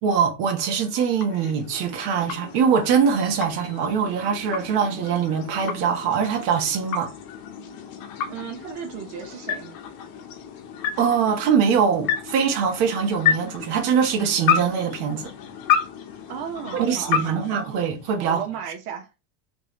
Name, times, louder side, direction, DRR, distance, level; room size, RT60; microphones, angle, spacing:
voice 1, 0.0-7.1 11.0-15.3 16.7-18.4, right 7 dB, 55° right, 1.3 m, -23 dB
sound 1, 0.6-18.4, left 8 dB, 50° left, 0.9 m, -31 dB
voice 2, 8.3-9.8 16.3-17.5 18.2-19.1, right 8 dB, 90° right, 1.2 m, -35 dB
3.4 x 3.2 x 3.1 m
supercardioid pair, 135°, 45 cm